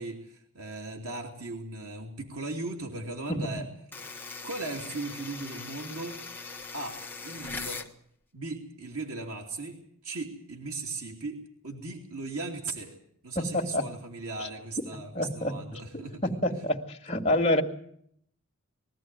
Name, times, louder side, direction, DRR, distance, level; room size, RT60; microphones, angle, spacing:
voice 1, 0.0-3.7 4.4-6.2 6.7-7.8 8.3-9.8 10.0-11.4 11.6-12.9 13.2-16.4, right 3 dB, 80° right, 2 dB, 3.1 m, -37 dB
sound 1, 3.9-7.9, left 4 dB, 10° left, 1.5 m, -40 dB
voice 2, 13.4-13.8 14.4-14.5 15.1-17.6, left 1 dB, 25° left, 2 dB, 2.1 m, -28 dB
22.0 x 14.5 x 9.3 m, 0.67 s
head